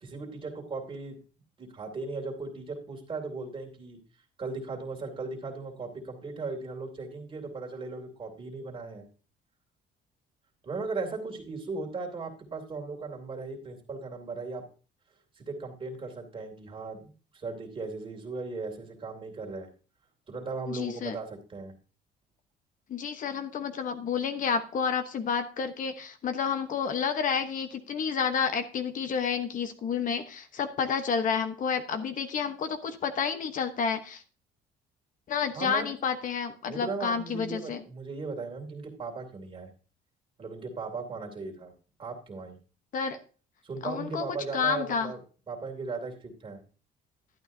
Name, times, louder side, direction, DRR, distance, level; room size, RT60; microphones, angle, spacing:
voice 1, 0.0-1.2 1.6-4.0 4.4-9.0 10.6-14.6 15.4-19.7 20.3-21.7 35.5-35.9 36.7-39.7 40.4-41.7 42.0-42.6 43.6-45.2 45.5-46.6, right 3 dB, 30° right, 2 dB, 2.7 m, -37 dB
voice 2, 20.7-21.2 22.9-34.2 35.3-37.8 42.9-43.2 43.8-45.1, left 6 dB, 50° left, 8 dB, 1.1 m, -30 dB
12.0 x 9.1 x 2.7 m, 0.36 s
cardioid pair, 110°, 17 cm